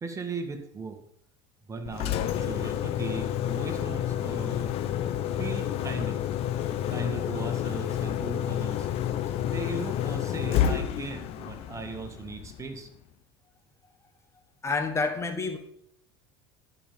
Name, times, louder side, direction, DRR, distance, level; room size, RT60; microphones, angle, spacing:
voice 1, 0.0-1.0 1.7-4.7 5.4-6.2 6.9-8.9 9.4-12.9, right 4 dB, 25° right, 6 dB, 1.7 m, -38 dB
Engine, 1.8-12.8, left 10 dB, 55° left, 0.9 m, -29 dB
voice 2, 14.6-15.6, left 4 dB, 25° left, 7 dB, 1.2 m, -28 dB
12.0 x 5.5 x 5.2 m, 0.74 s
hypercardioid pair, 85°, 12 cm